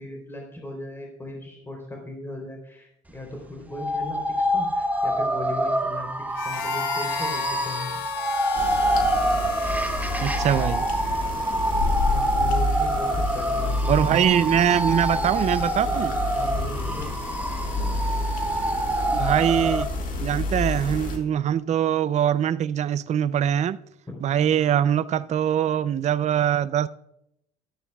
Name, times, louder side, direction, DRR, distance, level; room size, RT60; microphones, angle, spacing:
voice 1, 0.0-4.2 4.5-8.0 11.7-14.1 16.3-17.2 24.4-24.8, left 2 dB, 15° left, 3.5 m, -38 dB
sound 1, 3.7-19.8, right 1 dB, 10° right, 1.0 m, -26 dB
Harmonica, 6.3-11.3, left 12 dB, 75° left, 0.8 m, -34 dB
sound 2, 8.5-21.2, left 2 dB, 50° left, 2.1 m, -29 dB
voice 2, 10.2-10.9 13.9-16.1 19.1-19.9 20.2-23.8 24.2-26.9, right 9 dB, 40° right, 0.5 m, -22 dB
13.5 x 12.5 x 2.3 m
supercardioid pair, 90°, 18 cm